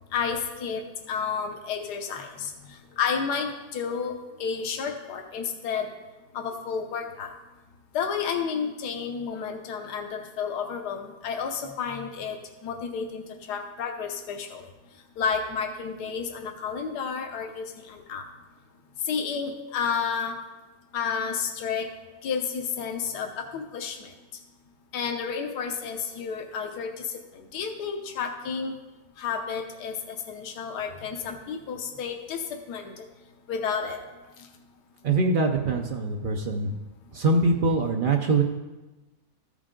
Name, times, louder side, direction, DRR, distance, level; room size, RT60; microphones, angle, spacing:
voice 1, 0.1-4.1 4.4-5.9 6.3-7.3 7.9-12.4 12.6-14.7 15.2-18.2 19.0-20.3 20.9-21.9 22.2-24.1 24.9-28.8 29.2-33.0 33.5-34.0 37.4-37.5, left 6 dB, 80° left, 5 dB, 1.4 m, -31 dB
voice 2, 35.0-36.7 37.1-38.4, right 3 dB, 80° right, 2 dB, 0.4 m, -23 dB
14.0 x 5.0 x 3.7 m, 1.1 s
omnidirectional pair, 1.7 m